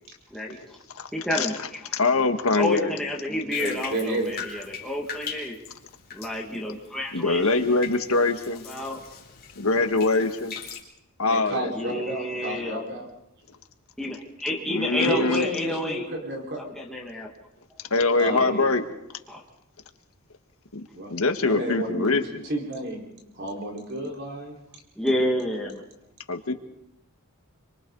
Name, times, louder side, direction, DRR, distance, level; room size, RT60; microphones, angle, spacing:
voice 1, 0.3-0.8 1.1-1.8 2.5-5.6 6.1-7.6 8.7-9.0 11.7-12.9 14.0-16.1 16.6-17.3 18.3-18.7 19.3-19.4 25.0-25.8, left 1 dB, ahead, -3 dB, 1.9 m, -29 dB
voice 2, 1.9-2.9 7.1-8.6 9.6-10.5 11.2-12.0 14.7-15.4 17.9-18.8 20.7-20.8 21.1-22.4 26.3-26.5, left 3 dB, 80° left, 7 dB, 1.6 m, -23 dB
Bathtub (filling or washing), 3.5-10.8, left 6 dB, 50° left, 4.0 m, -41 dB
voice 3, 3.6-4.3 11.2-13.1 15.0-16.6 18.2-18.6 20.9-21.1 21.4-22.1 22.4-23.0 23.3-24.5, right 1 dB, 55° right, 0 dB, 4.6 m, -31 dB
26.5 x 25.0 x 4.0 m, 0.85 s
head